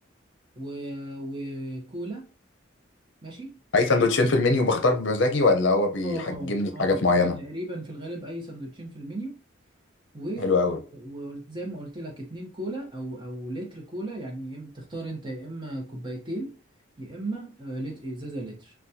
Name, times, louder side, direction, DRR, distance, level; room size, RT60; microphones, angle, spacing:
voice 1, 0.6-2.3 3.2-3.6 6.0-9.4 10.1-10.5 10.9-16.5 17.0-18.7, right 1 dB, 25° right, 0.8 m, -36 dB
voice 2, 3.7-7.4 10.4-10.8, left 3 dB, 65° left, 0.6 m, -22 dB
4.0 x 2.2 x 2.7 m
head